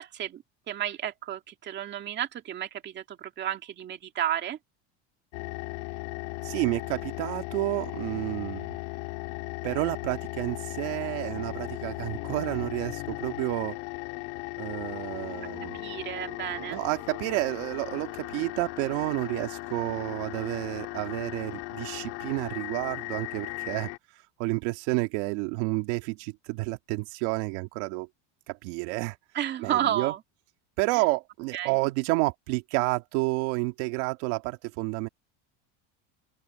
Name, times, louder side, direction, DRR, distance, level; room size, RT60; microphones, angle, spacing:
voice 1, 0.0-4.6 15.7-16.8 29.3-30.2 30.9-31.0 31.5-31.7, right 11 dB, 30° right, 2.3 m, -32 dB
sound 1, 5.3-24.0, left 26 dB, 75° left, 2.4 m, -37 dB
voice 2, 6.4-8.7 9.6-13.8 14.6-15.8 16.7-23.9 24.4-28.1 28.5-29.2 29.6-30.1 30.8-35.1, right 23 dB, 70° right, 2.3 m, -30 dB
open air
cardioid pair, 165°, 35 cm